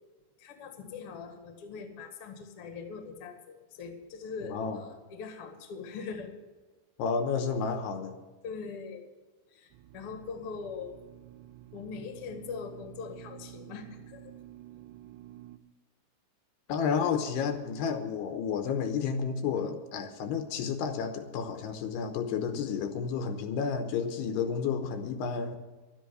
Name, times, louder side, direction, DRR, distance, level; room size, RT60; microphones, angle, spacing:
voice 1, 0.4-6.3 8.4-9.0 9.5-10.9 11.7-14.2, left 5 dB, 50° left, 5 dB, 1.9 m, -41 dB
voice 2, 4.5-4.8 7.0-8.1 16.7-25.6, left 6 dB, 75° left, 7 dB, 3.0 m, -31 dB
sound 1, 9.7-15.6, right 14 dB, 85° right, 2.9 m, -50 dB
12.5 x 10.5 x 7.9 m, 1.3 s
omnidirectional pair, 4.9 m